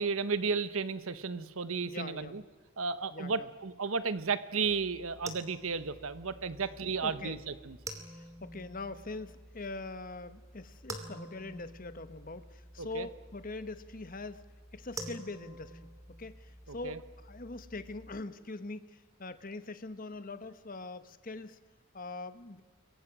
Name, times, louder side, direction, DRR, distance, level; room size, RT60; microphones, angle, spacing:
voice 1, 0.0-2.4 2.8-7.8 12.8-13.1 16.8-17.0, right 5 dB, 70° right, 13 dB, 1.1 m, -33 dB
voice 2, 1.8-2.4 3.1-3.5 7.0-7.4 8.1-15.8 16.2-21.6 21.9-22.6, left 3 dB, 40° left, 12 dB, 1.1 m, -43 dB
sound 1, 4.6-18.2, right 2 dB, 15° right, 2.5 m, -49 dB
28.0 x 23.0 x 6.2 m, 1.4 s
head